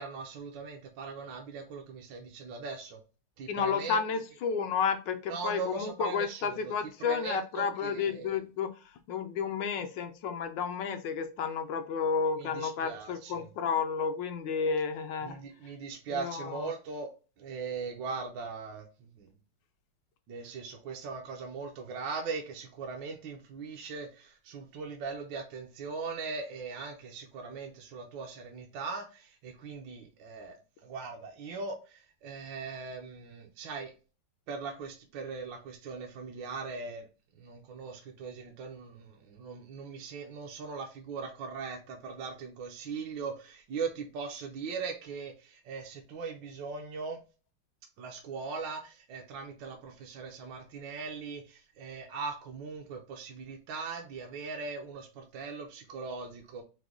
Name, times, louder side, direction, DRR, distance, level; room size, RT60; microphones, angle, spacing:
voice 1, 0.0-3.0 3.4-4.0 5.3-6.7 7.0-8.4 12.4-13.5 15.2-17.1 17.4-19.3 20.3-30.6 30.8-33.9 34.5-37.1 37.4-47.2 48.0-56.6, right 4 dB, 70° right, 2 dB, 1.3 m, -40 dB
voice 2, 3.5-8.7 9.1-15.4 16.1-16.7, left 6 dB, 75° left, 6 dB, 1.1 m, -31 dB
4.9 x 2.2 x 3.5 m, 0.33 s
omnidirectional pair, 2.3 m